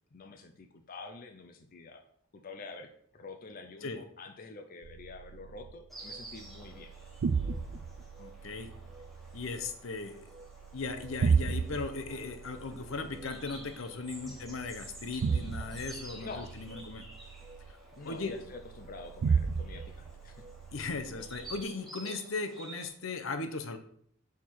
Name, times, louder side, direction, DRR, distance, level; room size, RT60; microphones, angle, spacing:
voice 1, 0.1-2.0 2.3-6.9 14.2-14.4 16.2-16.5 18.0-20.3, left 3 dB, 45° left, 5 dB, 0.6 m, -47 dB
sound 1, 4.8-21.6, right 5 dB, 90° right, 0.4 m, -35 dB
Insect, 5.9-22.9, right 1 dB, ahead, 1.4 m, -51 dB
voice 2, 8.2-8.7 9.3-10.3 10.7-17.1 18.0-18.3 20.7-23.8, left 3 dB, 80° left, 8 dB, 0.8 m, -38 dB
5.9 x 4.3 x 4.6 m, 0.63 s
head